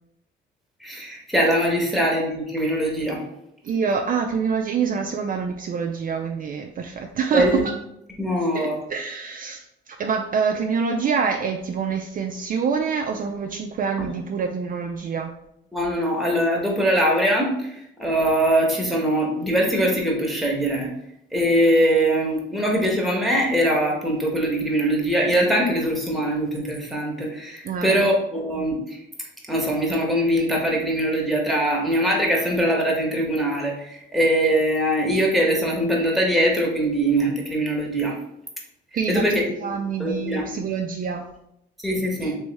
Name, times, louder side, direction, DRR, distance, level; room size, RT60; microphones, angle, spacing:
voice 1, 0.8-3.2 7.3-7.6 8.2-8.8 14.0-14.1 15.7-20.9 21.3-29.0 29.5-38.2 39.1-39.4 40.0-40.5 41.8-42.4, right 1 dB, ahead, -2 dB, 1.1 m, -22 dB
voice 2, 3.6-7.6 8.5-15.3 27.6-28.1 38.9-41.3 42.2-42.4, right 6 dB, 45° right, 3 dB, 0.4 m, -26 dB
3.2 x 3.0 x 3.4 m, 0.79 s
cardioid pair, 90°, 20 cm